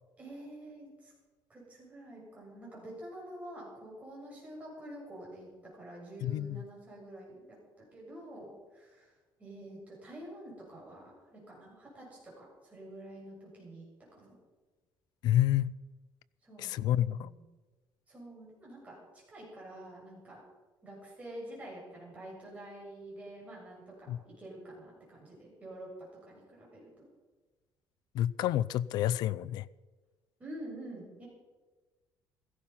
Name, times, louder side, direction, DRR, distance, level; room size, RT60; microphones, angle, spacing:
voice 1, 0.2-1.1 1.5-13.8 14.1-14.4 16.4-17.4 18.1-20.4 20.8-25.9 26.2-27.1 30.4-31.3, right 1 dB, 20° right, -4 dB, 7.1 m, -48 dB
voice 2, 6.2-6.6 15.2-15.7 16.6-17.3 24.1-24.2 28.1-29.7, left 12 dB, 60° left, 16 dB, 0.5 m, -29 dB
16.5 x 15.0 x 5.7 m, 1.3 s
cardioid pair, 175°, 8 cm